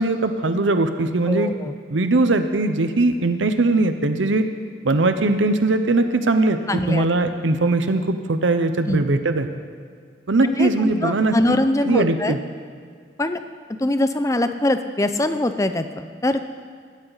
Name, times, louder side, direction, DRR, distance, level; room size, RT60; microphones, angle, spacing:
voice 1, 0.0-1.5 1.9-4.5 4.8-9.5 10.3-11.6 11.8-12.4, right 2 dB, 90° right, 8 dB, 0.8 m, -20 dB
voice 2, 1.3-1.7 6.7-7.0 8.9-9.0 10.4-12.4 13.2-13.4 13.8-16.5, left 1 dB, 15° left, 9 dB, 0.5 m, -23 dB
18.0 x 12.5 x 4.0 m, 2.1 s
head